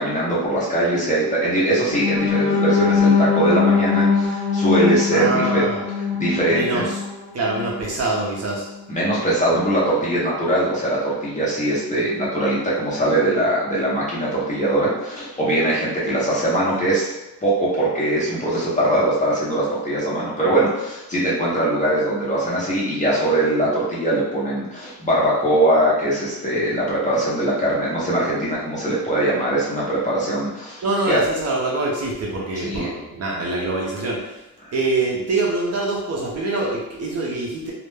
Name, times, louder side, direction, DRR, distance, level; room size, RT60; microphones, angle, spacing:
voice 1, 0.0-5.6 6.1-6.9 8.9-17.1 17.4-31.2 32.6-32.9 34.6-34.7, right 1 dB, 20° left, -6 dB, 0.5 m, -21 dB
sound 1, 1.9-7.9 8.3-8.5 8.9-9.1, left 5 dB, 90° left, 0.6 m, -21 dB
voice 2, 5.1-5.8 6.5-6.9 7.3-8.7 30.8-34.4 34.7-37.7, right 2 dB, 40° right, -3 dB, 0.4 m, -24 dB
2.1 x 2.0 x 3.0 m, 0.98 s
cardioid pair, 160°, 39 cm